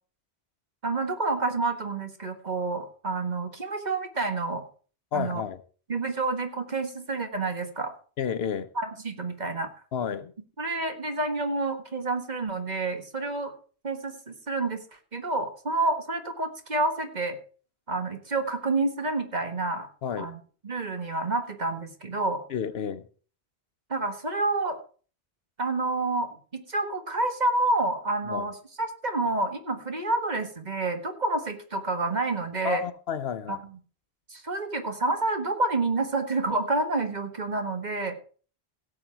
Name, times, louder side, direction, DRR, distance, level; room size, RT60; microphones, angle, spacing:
voice 1, 0.8-4.6 5.1-5.4 5.9-7.9 8.8-9.7 10.6-13.5 13.8-14.8 15.1-17.4 17.9-19.9 20.2-20.4 20.6-22.4 23.9-24.8 25.6-32.8 33.5-33.8 34.3-38.2, right 2 dB, 45° right, 1.7 m, -29 dB
voice 2, 5.1-5.6 8.2-8.7 9.9-10.3 20.0-20.3 22.5-23.0 28.3-28.5 32.6-33.6, left 8 dB, 80° left, 1.1 m, -31 dB
16.5 x 7.7 x 4.5 m
omnidirectional pair, 1.0 m